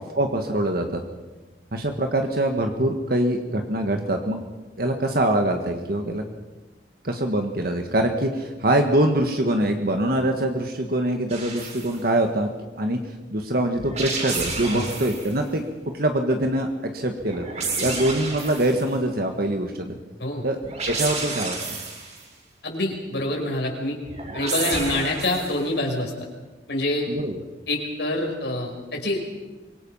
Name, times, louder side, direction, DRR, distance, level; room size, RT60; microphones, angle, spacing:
voice 1, 0.2-1.0 1.7-4.4 4.8-6.2 7.0-12.5 12.8-13.0 13.3-15.6 15.9-17.5 17.8-20.0 20.4-20.6 20.9-21.6 27.1-27.4, right 1 dB, 55° right, 4 dB, 1.7 m, -24 dB
sound 1, 11.3-12.0 13.8-15.4 17.2-18.9 20.6-22.2 24.1-25.7, right 3 dB, 40° right, 7.4 m, -30 dB
voice 2, 22.6-24.0 24.3-26.1 26.7-27.1 27.7-29.3, left 1 dB, 70° left, 1 dB, 5.6 m, -26 dB
25.0 x 23.5 x 5.7 m, 1.2 s
head